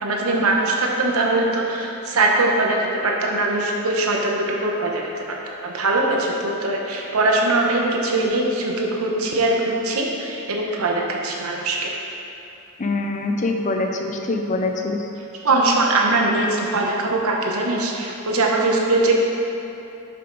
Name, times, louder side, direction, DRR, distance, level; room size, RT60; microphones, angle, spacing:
voice 1, 0.0-5.2 5.6-11.9 15.4-19.2, right 2 dB, 80° right, -1 dB, 0.9 m, -21 dB
voice 2, 12.8-15.1, left 2 dB, 35° left, 3 dB, 0.5 m, -24 dB
7.3 x 5.7 x 3.9 m, 2.8 s
head